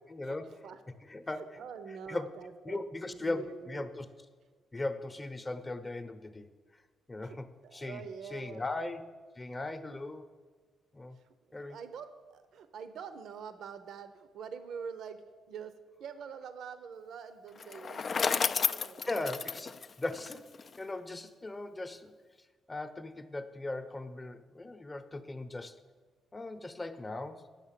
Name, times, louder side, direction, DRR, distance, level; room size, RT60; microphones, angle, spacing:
voice 1, 0.1-0.4 1.1-1.6 2.1-2.3 2.7-4.1 4.7-6.5 7.1-7.5 7.7-8.0 8.3-9.0 9.4-10.3 10.9-11.2 11.5-11.8 19.1-20.4 20.8-22.1 22.7-25.7 26.3-27.5, left 2 dB, 20° left, 9 dB, 0.8 m, -38 dB
voice 2, 1.3-4.0 7.2-8.7 11.2-11.3 11.7-15.2 15.5-15.7 16.0-19.2, right 6 dB, 70° right, 11 dB, 0.7 m, -45 dB
Bicycle, 17.6-20.8, left 5 dB, 40° left, 0.3 m, -32 dB
8.9 x 6.3 x 7.5 m, 1.5 s
cardioid pair, 90°, 0 cm